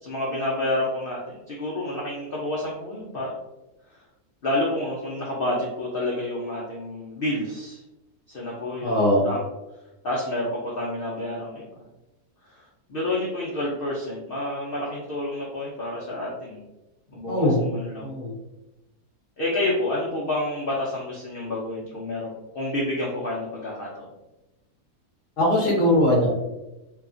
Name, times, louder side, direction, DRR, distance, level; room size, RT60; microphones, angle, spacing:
voice 1, 0.0-3.3 4.4-7.8 8.3-9.4 10.0-11.7 12.5-16.6 17.1-18.1 19.4-24.1, left 1 dB, 85° left, -5 dB, 0.4 m, -29 dB
voice 2, 8.8-9.2 17.3-17.6 18.0-18.3 25.4-26.3, left 1 dB, 45° left, -4 dB, 0.7 m, -20 dB
2.7 x 2.3 x 2.4 m, 1.0 s
omnidirectional pair, 1.7 m